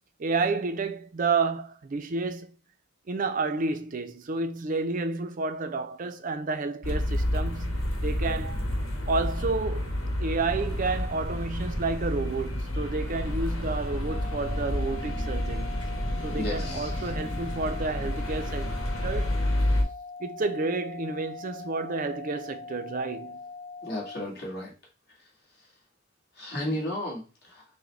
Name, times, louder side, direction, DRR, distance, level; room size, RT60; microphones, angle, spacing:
voice 1, 0.2-2.5 3.1-7.7 8.0-8.6 9.1-9.9 10.2-15.8 16.2-18.8 19.0-19.4 20.2-23.4, right 3 dB, 40° right, 0.5 m, -30 dB
sound 1, 6.8-19.8, left 1 dB, 85° left, 1.2 m, -30 dB
sound 2, 14.1-24.2, left 4 dB, 20° left, 0.6 m, -42 dB
voice 2, 16.3-16.9 23.8-24.7 25.6-25.7 26.3-27.6, left 1 dB, 50° left, 1.5 m, -34 dB
5.9 x 2.2 x 3.2 m
head